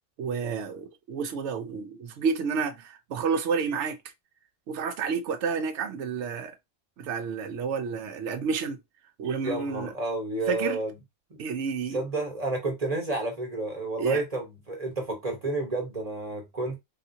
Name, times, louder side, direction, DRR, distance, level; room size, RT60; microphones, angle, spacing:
voice 1, 0.2-4.0 4.7-6.5 7.0-8.8 9.2-9.9 10.5-10.8 11.4-12.0 14.0-14.2, right 5 dB, 65° right, 0.8 m, -30 dB
voice 2, 9.4-10.9 11.3-11.4 11.9-16.8, right 2 dB, 30° right, 1.1 m, -30 dB
3.7 x 2.4 x 2.7 m
omnidirectional pair, 1.5 m